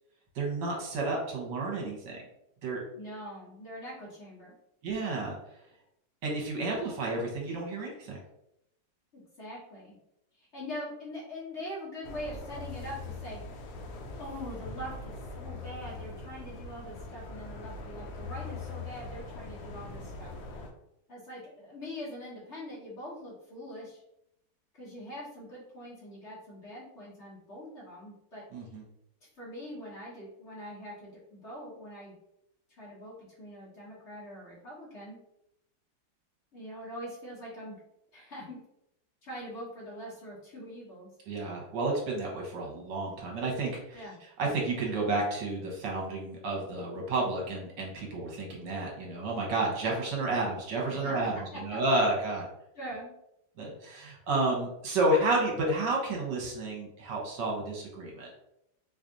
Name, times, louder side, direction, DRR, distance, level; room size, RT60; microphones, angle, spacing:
voice 1, 0.3-2.2 2.6-2.8 4.8-5.4 6.2-8.2 28.5-28.8 41.3-52.5 53.6-58.4, right 2 dB, 70° right, -2 dB, 1.5 m, -31 dB
voice 2, 2.9-4.5 9.1-9.9 10.4-13.4 14.2-20.3 21.1-24.0 24.8-28.4 29.2-32.1 32.8-35.2 36.5-37.7 38.1-38.6 39.2-41.1 43.9-44.2 50.9-51.1 51.5-51.8 52.7-53.2, equal, 40° left, -6 dB, 1.4 m, -43 dB
sound 1, 12.0-20.7, left 3 dB, 70° left, 1.0 m, -42 dB
4.5 x 2.5 x 2.5 m, 0.81 s
omnidirectional pair, 2.1 m